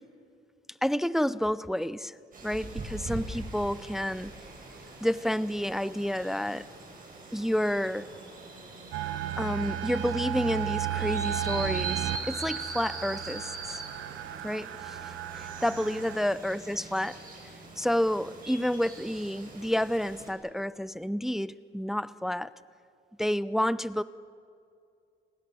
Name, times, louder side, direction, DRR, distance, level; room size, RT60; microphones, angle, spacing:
voice 1, 0.8-2.1 2.4-4.3 5.0-6.7 7.3-8.1 9.4-13.8 14.4-17.2 17.8-22.5 23.2-24.0, equal, ahead, 17 dB, 0.5 m, -30 dB
sound 1, 2.3-20.3, right 3 dB, 45° right, 7.9 m, -42 dB
sound 2, 8.9-16.2, right 11 dB, 90° right, 1.2 m, -34 dB
30.0 x 20.5 x 7.0 m, 2.5 s
cardioid pair, 90°, 20 cm